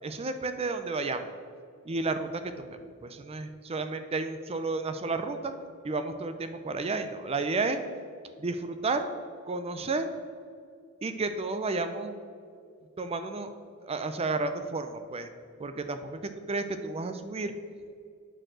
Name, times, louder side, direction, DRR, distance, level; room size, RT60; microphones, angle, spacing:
voice 1, 0.0-1.3 1.8-5.5 5.8-7.8 8.4-9.1 9.5-10.1 11.0-12.1 13.0-13.5 13.8-15.3 15.6-17.5, right 3 dB, 30° right, 9 dB, 0.5 m, -32 dB
8.9 x 4.5 x 6.2 m, 2.2 s
head